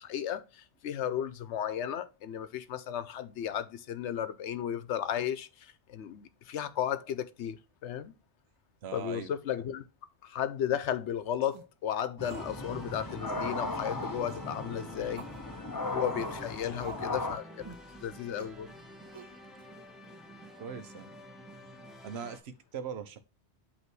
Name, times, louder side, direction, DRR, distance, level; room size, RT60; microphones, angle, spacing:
voice 1, 0.0-8.1 8.9-9.8 10.2-15.2 15.9-17.6 18.0-18.7, left 9 dB, 85° left, 1.0 m, -34 dB
voice 2, 8.8-9.3 19.1-19.3 20.6-21.1 22.0-23.2, right 7 dB, 70° right, 1.1 m, -41 dB
sound 1, 11.3-11.7 12.2-12.6 12.8-12.9 13.3-13.5 14.3-14.5 15.2-15.4 16.1-16.3 16.8-17.2 17.6-17.9 18.4-18.6 19.1-19.6, right 6 dB, 40° right, 0.4 m, -47 dB
sound 2, 12.2-17.4, left 2 dB, 25° left, 0.6 m, -37 dB
sound 3, 12.2-22.4, equal, ahead, 1.4 m, -49 dB
8.2 x 3.1 x 6.0 m
omnidirectional pair, 1.2 m